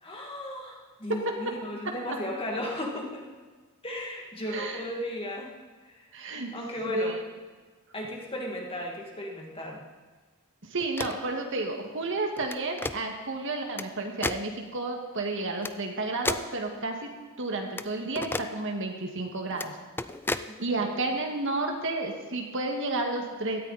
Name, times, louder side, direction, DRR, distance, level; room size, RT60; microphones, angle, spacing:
voice 1, 0.0-3.3 3.8-5.5 5.8-6.1 6.5-7.2 7.9-9.8 20.5-21.0, left 1 dB, 25° left, -1 dB, 2.3 m, -35 dB
voice 2, 4.5-4.8 6.1-6.5 6.9-7.1 10.6-17.1 17.4-19.8 20.6-23.6, right 2 dB, 60° right, 2 dB, 1.9 m, -31 dB
sound 1, 10.8-11.3 12.4-13.0 13.8-13.9 14.2-14.4 15.6-15.7 16.2-16.5 17.8-17.9 18.2-18.5 19.5-19.7 20.0-20.5, left 2 dB, 10° left, 0.3 m, -32 dB
17.5 x 13.0 x 4.2 m, 1.4 s
head